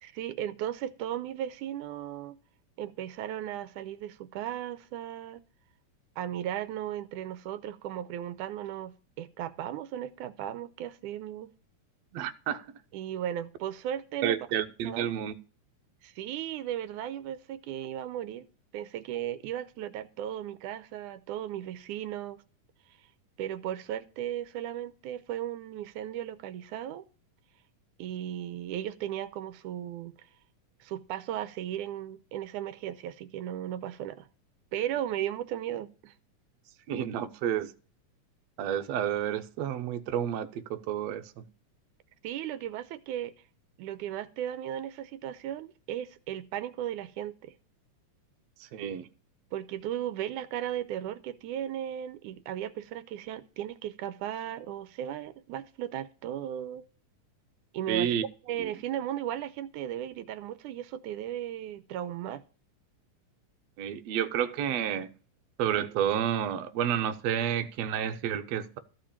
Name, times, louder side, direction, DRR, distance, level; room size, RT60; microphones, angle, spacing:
voice 1, 0.0-2.4 2.8-5.4 6.2-11.5 12.9-14.4 14.8-15.2 16.0-18.5 18.7-22.4 23.4-27.0 28.0-30.1 30.8-34.3 34.7-36.1 42.2-43.3 43.8-47.5 49.5-56.9 57.7-58.1 58.4-62.4, right 11 dB, 85° right, 2.2 m, -36 dB
voice 2, 12.1-12.7 14.2-15.3 36.9-37.7 38.6-41.4 48.7-49.1 57.9-58.2 58.6-58.7 63.8-65.1 65.6-68.8, right 9 dB, 65° right, 1.9 m, -30 dB
14.0 x 5.2 x 8.7 m
omnidirectional pair, 3.6 m